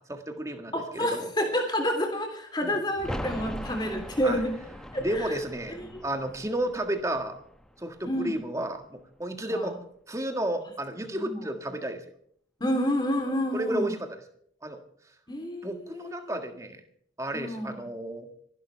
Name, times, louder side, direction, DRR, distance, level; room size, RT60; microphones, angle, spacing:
voice 1, 0.0-1.3 2.6-2.7 4.2-4.4 5.0-7.4 7.8-9.7 10.1-12.0 13.5-14.2 14.6-14.8 15.6-16.8 17.2-18.3, right 1 dB, 15° right, 6 dB, 1.7 m, -32 dB
voice 2, 0.7-4.5 4.9-5.4 5.7-6.0 8.0-8.3 9.5-9.7 11.1-11.4 12.6-13.9 15.3-16.4 17.3-17.8, equal, 25° left, 4 dB, 3.3 m, -29 dB
sound 1, 3.0-8.5 8.8-8.9, equal, 5° left, 1.0 m, -40 dB
26.0 x 12.0 x 3.4 m, 0.65 s
head